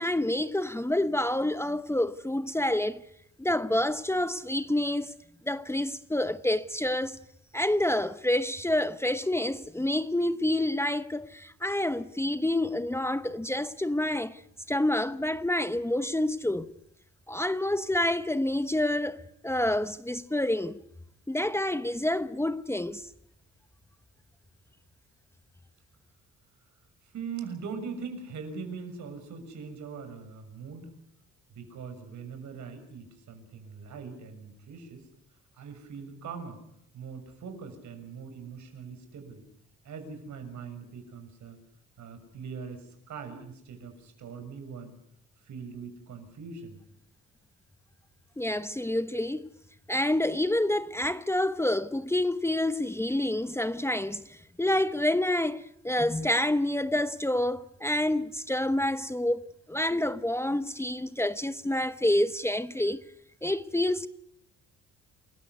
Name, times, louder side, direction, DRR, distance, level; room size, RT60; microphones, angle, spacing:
voice 1, 0.0-3.0 3.4-5.1 5.5-7.2 7.5-14.4 14.7-16.7 17.3-20.8 21.3-23.1 48.4-49.4 49.9-63.0 63.4-64.1, left 1 dB, 10° left, 1.0 m, -28 dB
voice 2, 27.0-30.9 31.5-35.0 35.5-36.6 36.9-39.4 39.8-41.6 42.0-44.9 45.4-46.8, right 5 dB, 70° right, 6.7 m, -41 dB
28.5 x 14.5 x 9.6 m
cardioid pair, 90°, 30 cm